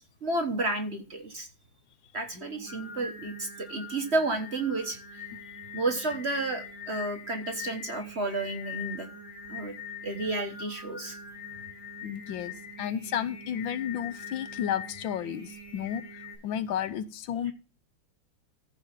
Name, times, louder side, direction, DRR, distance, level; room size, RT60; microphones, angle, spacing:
voice 1, 0.0-1.5 2.1-5.2 5.7-9.1 9.5-9.7 10.0-11.2, right 2 dB, 35° right, 5 dB, 1.4 m, -31 dB
Singing, 2.3-16.4, left 4 dB, 55° right, 8.8 m, -43 dB
voice 2, 12.0-12.5 12.8-17.5, left 9 dB, 80° left, 14 dB, 1.5 m, -32 dB
14.5 x 4.9 x 5.9 m, 0.33 s
omnidirectional pair, 2.1 m